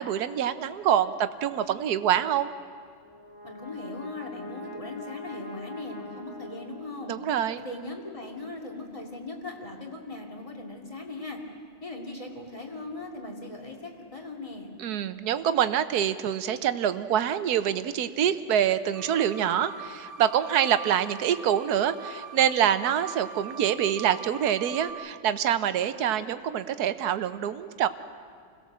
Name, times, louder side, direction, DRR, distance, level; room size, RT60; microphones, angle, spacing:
voice 1, 0.0-2.5 7.1-7.6 14.8-27.9, right 9 dB, 60° right, 11 dB, 1.1 m, -26 dB
Brass instrument, 2.9-7.3, left 1 dB, 70° left, 4.6 m, -44 dB
voice 2, 3.4-7.2 7.6-11.4 11.8-14.7, left 2 dB, 15° left, 1 dB, 2.4 m, -39 dB
sound 1, 18.9-24.9, right 5 dB, 40° right, 2.4 m, -42 dB
28.0 x 17.0 x 7.4 m, 2.2 s
omnidirectional pair, 2.3 m